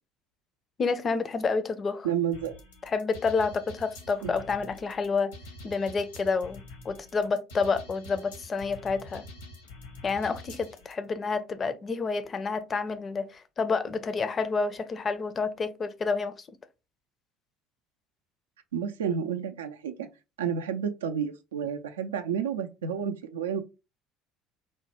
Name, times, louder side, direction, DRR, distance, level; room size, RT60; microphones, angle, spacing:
voice 1, 0.8-2.1 2.9-5.3 5.6-9.2 10.0-16.5, left 4 dB, 35° left, 0.4 m, -29 dB
voice 2, 2.0-2.5 4.2-4.3 18.7-20.1 20.4-23.6, right 8 dB, 80° right, 0.3 m, -30 dB
sound 1, 2.3-10.9, left 2 dB, 80° left, 0.8 m, -46 dB
3.1 x 2.1 x 2.9 m
figure-of-eight pair, 60°, 0 cm